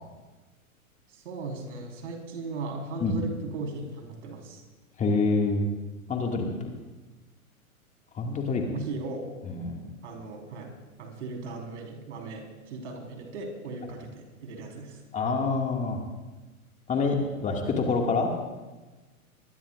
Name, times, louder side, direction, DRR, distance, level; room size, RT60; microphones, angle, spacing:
voice 1, 1.1-4.6 8.7-9.3 10.0-10.7 11.0-15.0, right 3 dB, 55° right, 2 dB, 4.5 m, -37 dB
voice 2, 5.0-5.7 6.1-6.7 8.1-8.6 9.5-9.8 15.1-16.0 16.9-18.3, left 4 dB, 15° left, 1 dB, 2.1 m, -26 dB
26.0 x 21.0 x 2.5 m, 1.2 s
figure-of-eight pair, 105°, 43 cm